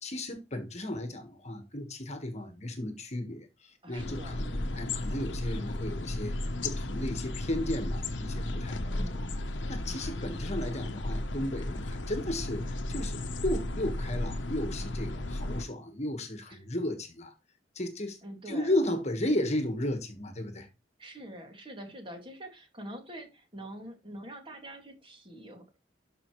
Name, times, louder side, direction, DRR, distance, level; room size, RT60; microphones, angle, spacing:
voice 1, 0.0-4.5 4.7-6.4 6.6-9.0 9.7-17.3 17.7-18.2 18.5-20.7, left 1 dB, 40° left, 1.5 m, -34 dB
voice 2, 3.8-4.8 8.9-9.3 16.5-16.6 18.2-18.7 21.0-25.8, right 1 dB, 30° right, 2.4 m, -45 dB
sound 1, 4.0-15.7, left 1 dB, 80° left, 1.0 m, -34 dB
12.5 x 5.5 x 3.1 m
head